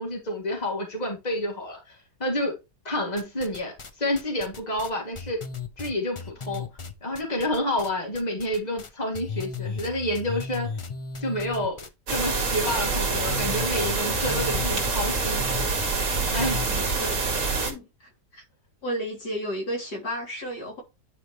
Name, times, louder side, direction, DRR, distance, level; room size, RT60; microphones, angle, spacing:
voice 1, 0.0-2.5 2.8-3.7 4.0-5.4 5.8-6.7 7.0-10.7 11.2-15.5 16.3-16.6, left 1 dB, 25° left, 2.7 m, -29 dB
sound 1, 3.2-3.9 4.2-8.9 9.1-17.0, left 4 dB, 40° left, 0.4 m, -36 dB
sound 2, 12.1-17.7, right 4 dB, 50° right, 2.3 m, -26 dB
voice 2, 16.4-17.3 17.6-18.4 18.8-20.8, equal, 80° left, 3.8 m, -33 dB
10.0 x 5.0 x 3.2 m
omnidirectional pair, 1.8 m